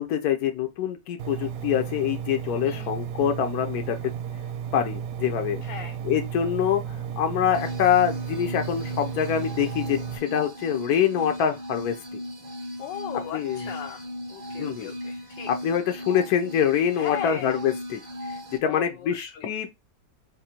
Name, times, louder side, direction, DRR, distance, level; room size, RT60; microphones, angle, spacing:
voice 1, 0.0-4.0 4.7-5.6 6.0-11.9 13.3-13.7 14.6-14.9 15.5-18.0 18.6-19.7, left 9 dB, 65° left, 1.2 m, -25 dB
Engine, 1.2-10.2, right 8 dB, 65° right, 0.9 m, -34 dB
voice 2, 5.6-6.0 12.8-14.0 14.3-15.5 17.0-17.5 18.7-19.5, left 9 dB, 85° left, 1.3 m, -37 dB
sound 1, 7.5-18.6, left 1 dB, 35° right, 0.7 m, -37 dB
4.0 x 2.6 x 4.3 m
omnidirectional pair, 1.9 m